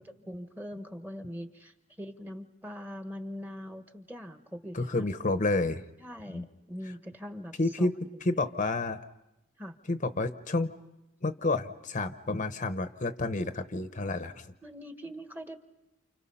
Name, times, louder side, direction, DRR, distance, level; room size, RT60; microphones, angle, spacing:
voice 1, 0.0-5.0 6.0-8.2 9.6-9.8 14.6-15.6, equal, 10° right, 7 dB, 1.4 m, -42 dB
voice 2, 4.7-5.8 6.3-6.5 7.6-9.0 9.9-10.7 11.2-14.5, left 2 dB, 40° left, 10 dB, 0.8 m, -30 dB
29.5 x 29.5 x 5.6 m, 0.92 s
head